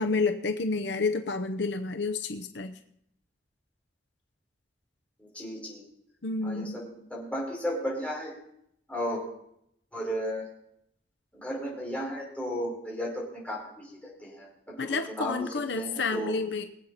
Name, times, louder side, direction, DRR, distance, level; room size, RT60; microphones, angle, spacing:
voice 1, 0.0-2.7 6.2-6.8 14.8-16.6, left 4 dB, 75° left, 8 dB, 0.8 m, -29 dB
voice 2, 5.2-5.8 6.4-8.3 8.9-9.2 9.9-10.5 11.3-16.3, equal, 10° left, -4 dB, 5.1 m, -34 dB
23.0 x 8.1 x 4.1 m, 0.74 s
head